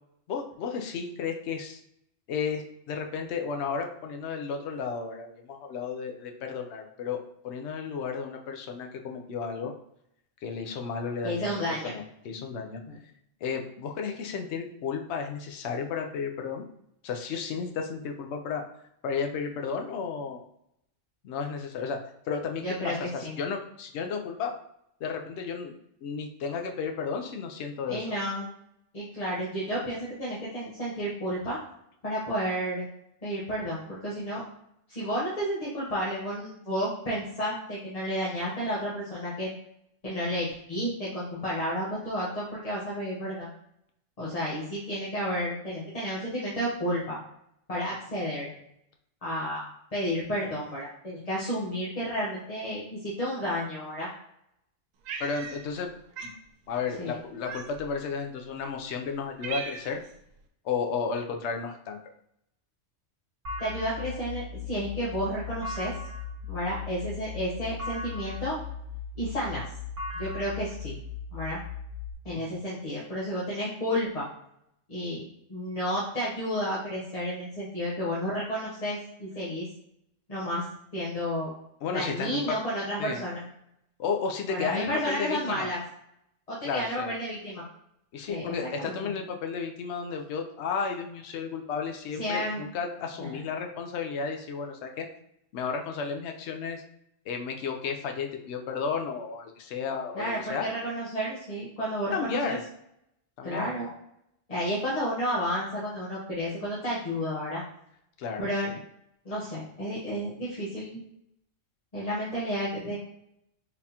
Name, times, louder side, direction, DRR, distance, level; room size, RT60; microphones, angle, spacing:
voice 1, 0.3-1.8 2.3-9.7 10.4-12.8 13.4-16.6 17.0-18.6 19.0-20.4 21.2-22.0 22.3-24.5 25.0-25.7 26.0-28.1 55.2-55.9 56.2-56.3 56.7-60.0 60.6-62.0 72.3-72.4 81.8-82.6 83.0-83.2 84.0-85.7 86.6-87.1 88.1-95.1 95.5-96.8 97.3-100.6 102.1-102.6 103.4-103.7 108.2-108.8, left 5 dB, 65° left, 3 dB, 0.8 m, -33 dB
voice 2, 11.2-11.9 12.9-13.0 22.6-23.4 27.9-28.5 28.9-31.6 32.0-32.8 33.2-34.4 34.9-39.5 40.0-43.5 44.2-47.2 47.7-48.5 49.2-49.6 49.9-54.1 57.0-57.2 63.6-66.0 66.5-68.6 69.2-69.7 70.1-70.9 71.3-71.6 72.2-74.3 74.9-79.7 80.3-80.6 80.9-81.5 81.9-83.4 84.5-85.8 86.5-87.6 88.3-89.1 92.2-92.6 93.2-93.4 100.1-102.6 103.4-103.9 104.5-107.6 108.4-108.7 109.2-111.0 111.9-113.0, equal, 30° left, -8 dB, 0.9 m, -31 dB
Cat, 55.1-55.9 56.2-56.4 57.5-58.0 58.7-58.8 59.1-60.1, right 6 dB, 85° right, 1.0 m, -38 dB
sound 1, 63.4-72.1, left 5 dB, 65° right, 1.2 m, -38 dB
4.2 x 3.5 x 2.8 m, 0.75 s
omnidirectional pair, 1.4 m